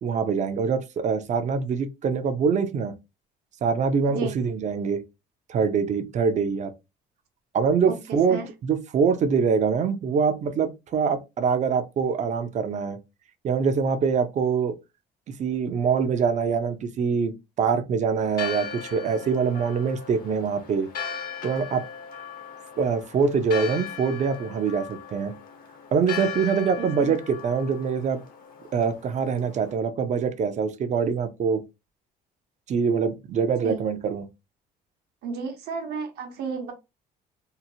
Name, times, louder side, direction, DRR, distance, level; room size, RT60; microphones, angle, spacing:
voice 1, 0.0-2.9 3.6-5.0 5.5-6.7 7.5-13.0 13.4-14.7 15.4-20.9 21.4-21.8 22.8-25.3 25.9-28.2 28.7-31.6 32.7-34.2, right 6 dB, 45° right, 0.5 m, -24 dB
voice 2, 7.9-8.5 26.8-27.1 33.6-33.8 35.2-36.7, right 4 dB, 75° right, 0.9 m, -33 dB
Church bell, 18.2-29.7, left 7 dB, 55° left, 0.8 m, -38 dB
2.8 x 2.0 x 2.7 m
cardioid pair, 110°, 17 cm